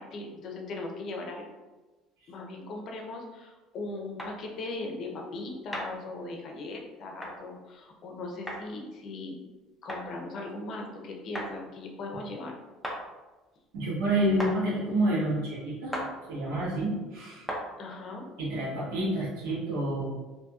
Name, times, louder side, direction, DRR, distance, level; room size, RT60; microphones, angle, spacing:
voice 1, 0.0-1.4 2.3-9.4 9.8-12.6 17.8-18.3, left 2 dB, 50° left, 1 dB, 0.6 m, -39 dB
sound 1, 4.2-4.3 5.7-5.9 7.2-7.4 8.5-8.6 9.9-10.0 11.3-11.5 12.8-13.0 14.4-14.6 15.9-16.1 17.5-17.7, equal, ahead, 0.5 m, -34 dB
voice 2, 13.7-16.0 16.3-17.4 18.4-20.0, right 1 dB, 90° right, -6 dB, 1.1 m, -28 dB
2.7 x 2.6 x 2.3 m, 1.2 s
cardioid pair, 115°, 0 cm